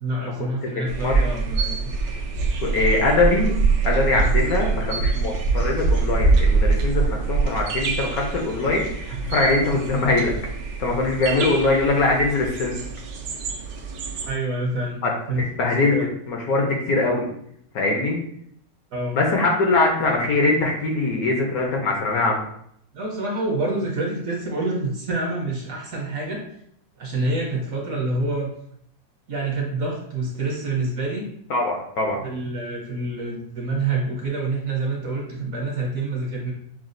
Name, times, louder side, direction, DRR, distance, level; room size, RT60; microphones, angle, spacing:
voice 1, 0.0-1.9 11.3-11.5 14.2-15.0 15.3-15.4 15.9-16.1 18.9-19.2 22.9-26.4 27.0-28.5 29.3-31.2 32.2-36.5, right 2 dB, 60° right, -1 dB, 1.0 m, -27 dB
voice 2, 0.6-1.3 2.6-3.5 3.8-10.3 10.8-12.7 15.0-15.1 15.6-16.0 16.3-17.3 17.7-18.2 19.1-22.4 31.5-32.2, left 2 dB, 65° left, 0 dB, 1.0 m, -22 dB
sound 1, 0.9-14.3, right 4 dB, 80° right, 1.3 m, -24 dB
6.0 x 2.3 x 2.5 m, 0.69 s
omnidirectional pair, 1.9 m